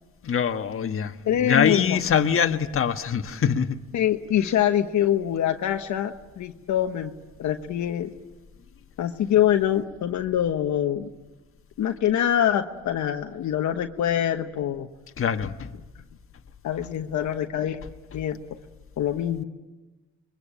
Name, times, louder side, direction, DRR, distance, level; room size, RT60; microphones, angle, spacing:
voice 1, 0.2-3.8 15.2-15.7, left 7 dB, 45° left, 1.5 m, -24 dB
voice 2, 1.2-2.0 3.9-7.1 7.4-8.1 9.0-11.1 11.8-14.9 16.6-17.8 18.1-18.6 19.0-19.4, left 10 dB, 70° left, 1.2 m, -24 dB
27.0 x 22.5 x 9.0 m
cardioid pair, 90°, 30 cm